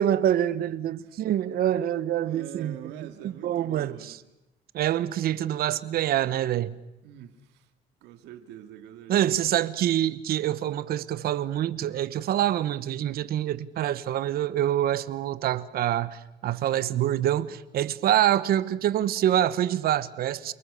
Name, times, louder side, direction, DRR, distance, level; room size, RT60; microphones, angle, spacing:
voice 1, 0.0-2.8 3.2-4.0 4.7-6.7 9.1-20.5, right 11 dB, 65° right, 1.1 m, -26 dB
voice 2, 1.0-1.6 2.2-4.2 7.0-7.7 8.0-9.5, right 11 dB, 90° right, 2.2 m, -45 dB
29.5 x 20.0 x 6.9 m
cardioid pair, 110°, 17 cm